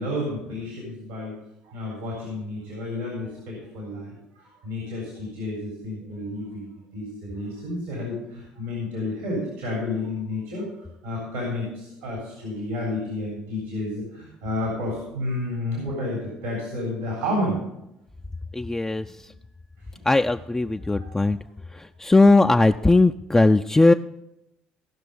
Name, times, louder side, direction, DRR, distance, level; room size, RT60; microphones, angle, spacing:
voice 1, 0.0-1.4 1.6-10.7 11.0-17.6 19.9-20.0 20.8-21.2, left 1 dB, 90° right, -3 dB, 3.8 m, -31 dB
voice 2, 18.5-19.1 20.1-21.4 21.7-23.9, left 2 dB, 15° left, 6 dB, 0.4 m, -18 dB
17.0 x 5.9 x 5.3 m, 0.86 s
hypercardioid pair, 65°, 4 cm